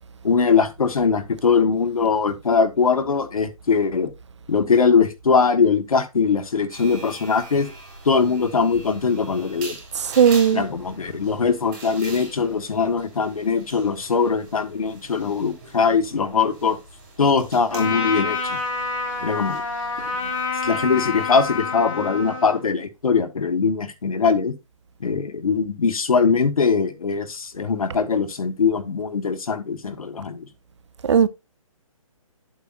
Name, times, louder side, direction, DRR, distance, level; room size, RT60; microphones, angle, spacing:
voice 1, 0.2-4.1 4.5-7.7 8.0-9.8 10.5-16.8 17.2-18.6 19.2-19.6 20.0-20.1 20.6-24.5 25.0-30.5, left 5 dB, 85° left, 1.5 m, -21 dB
sound 1, 6.7-21.6, right 2 dB, 30° right, 6.3 m, -43 dB
voice 2, 10.1-10.6 31.0-31.3, right 7 dB, 55° right, 0.6 m, -16 dB
Trumpet, 17.7-22.6, left 4 dB, 65° left, 3.8 m, -27 dB
8.8 x 8.2 x 2.5 m
hypercardioid pair, 170°, 18 cm